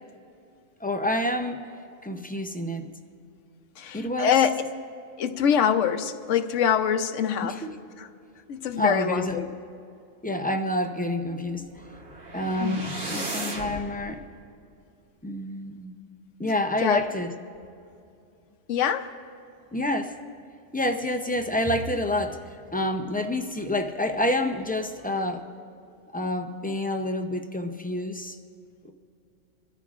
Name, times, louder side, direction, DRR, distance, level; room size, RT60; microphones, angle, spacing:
voice 1, 0.8-1.7 2.0-2.9 3.9-4.3 7.4-7.7 8.8-9.4 10.2-11.6 12.3-14.2 15.2-16.0 16.4-17.3 19.7-20.1 20.7-22.4 22.7-25.4 26.1-28.4 28.8-28.9, left 1 dB, 15° left, 5 dB, 0.4 m, -28 dB
voice 2, 3.8-4.6 5.2-7.7 8.0-8.1 8.5-9.5 12.6-12.8 16.8-17.0 18.7-19.1, left 8 dB, 70° left, 8 dB, 1.1 m, -24 dB
sound 1, 11.7-13.9, right 2 dB, 60° right, 1.9 m, -35 dB
25.0 x 13.5 x 2.5 m, 2.6 s
omnidirectional pair, 1.3 m